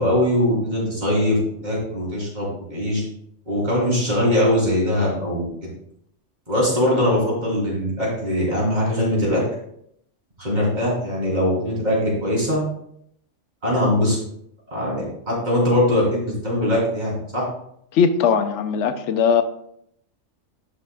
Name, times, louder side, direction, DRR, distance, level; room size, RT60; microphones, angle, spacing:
voice 1, 0.0-3.0 3.5-5.7 6.5-9.4 10.4-12.6 13.6-14.2 14.7-17.4, left 1 dB, 35° right, -5 dB, 3.5 m, -21 dB
voice 2, 17.9-19.4, left 6 dB, 80° left, 10 dB, 1.0 m, -19 dB
11.5 x 5.8 x 2.3 m, 0.71 s
omnidirectional pair, 1.2 m